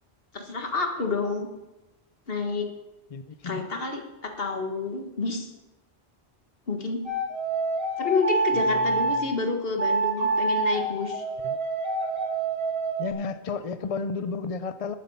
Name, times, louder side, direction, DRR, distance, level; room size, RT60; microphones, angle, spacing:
voice 1, 0.3-1.5 2.3-2.7 3.4-5.5 6.7-7.0 8.0-11.2, left 4 dB, 65° left, 4 dB, 1.8 m, -29 dB
voice 2, 3.1-3.7 8.6-9.4 11.4-11.6 13.0-15.0, left 4 dB, 45° left, 11 dB, 0.5 m, -33 dB
sound 1, 7.1-9.2 9.8-13.1, right 3 dB, 70° right, 2.6 m, -26 dB
11.5 x 9.4 x 5.6 m, 1.0 s
omnidirectional pair, 1.1 m